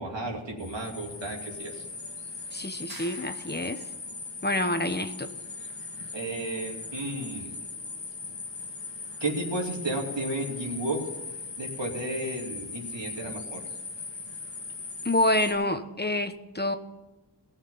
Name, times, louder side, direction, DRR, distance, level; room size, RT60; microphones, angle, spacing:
voice 1, 0.0-1.8 6.1-7.6 9.2-11.1 11.6-13.6, right 1 dB, 85° right, -1 dB, 2.8 m, -33 dB
sound 1, 0.6-15.5, left 4 dB, 80° left, 2.0 m, -39 dB
voice 2, 2.5-3.8 4.4-5.3 15.0-16.8, left 1 dB, 25° left, 8 dB, 1.1 m, -27 dB
sound 2, 2.9-4.0, right 3 dB, 55° right, 1.7 m, -47 dB
18.5 x 6.6 x 5.6 m, 1.1 s
wide cardioid pair, 50°, 43 cm